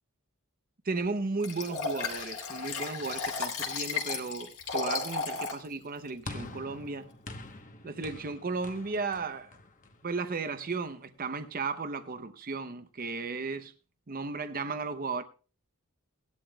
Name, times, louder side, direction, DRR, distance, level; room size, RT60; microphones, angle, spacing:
voice 1, 0.8-7.1 7.8-9.6 10.0-13.7 14.1-15.2, right 4 dB, 40° right, 0.7 m, -35 dB
Liquid, 1.4-5.6 6.1-6.2, left 4 dB, 90° left, 3.4 m, -34 dB
sound 1, 6.3-10.7, left 2 dB, 35° left, 1.0 m, -46 dB
18.0 x 11.5 x 2.3 m
head